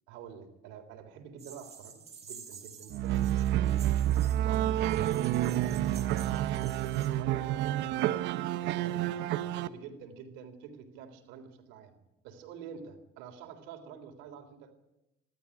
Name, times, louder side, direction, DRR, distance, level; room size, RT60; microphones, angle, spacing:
voice 1, 0.1-3.8 4.2-8.1 8.6-9.1 9.4-12.0 12.2-14.7, right 7 dB, 90° right, 7 dB, 3.6 m, -48 dB
sound 1, 1.4-7.1, right 7 dB, 35° right, 6.3 m, -50 dB
sound 2, 2.9-9.7, right 13 dB, 75° right, 1.2 m, -29 dB
sound 3, 4.8-7.3, right 13 dB, 55° right, 0.8 m, -44 dB
26.5 x 12.5 x 9.9 m, 0.91 s
cardioid pair, 115°, 19 cm